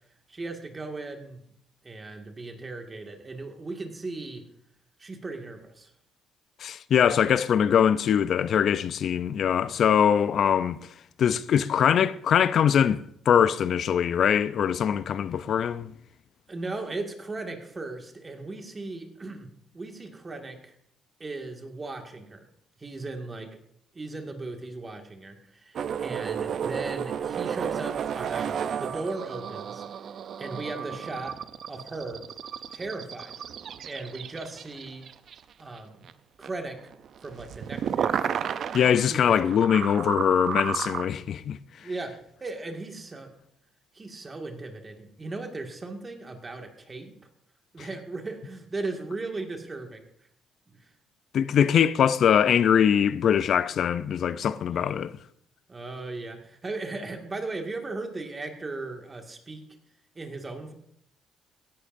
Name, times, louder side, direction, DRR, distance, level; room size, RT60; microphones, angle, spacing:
voice 1, 0.3-1.4 1.8-4.4 5.0-5.9 16.5-19.5 19.7-20.7 21.2-22.5 22.8-23.6 23.9-29.8 30.4-31.4 31.7-32.3 32.7-33.4 33.9-35.1 35.6-36.1 36.4-36.9 37.2-38.2 38.8-39.4 41.8-43.3 43.9-47.1 47.7-50.0 50.7-50.9 54.7-55.0 55.7-59.6 60.2-60.7, right 3 dB, 25° right, 2.0 m, -37 dB
voice 2, 6.6-10.8 11.2-15.9 38.7-41.6 51.3-55.1, left 8 dB, 60° left, 0.5 m, -22 dB
sound 1, 25.7-35.8 36.1-36.2 36.4-41.1, right 8 dB, 60° right, 0.6 m, -32 dB
16.5 x 11.5 x 2.7 m
cardioid pair, 90°, 0 cm